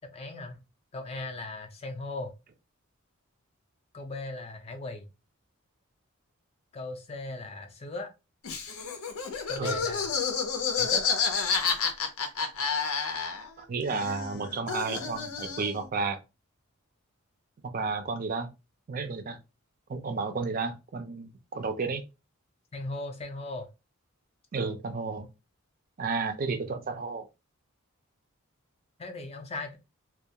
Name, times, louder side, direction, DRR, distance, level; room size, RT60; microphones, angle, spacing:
voice 1, 0.1-0.6 0.9-2.3 3.9-5.1 6.7-8.1 9.5-10.1 10.7-11.0 22.7-23.7 29.0-29.8, left 2 dB, 30° left, 0.4 m, -38 dB
Laughter, 8.4-13.6 13.9-15.8, left 5 dB, 85° left, 0.6 m, -30 dB
voice 2, 13.7-16.2 17.6-18.5 18.9-19.4 19.9-22.0 24.5-25.3 26.0-27.2, right 4 dB, 40° right, 0.4 m, -32 dB
2.3 x 2.2 x 2.7 m
head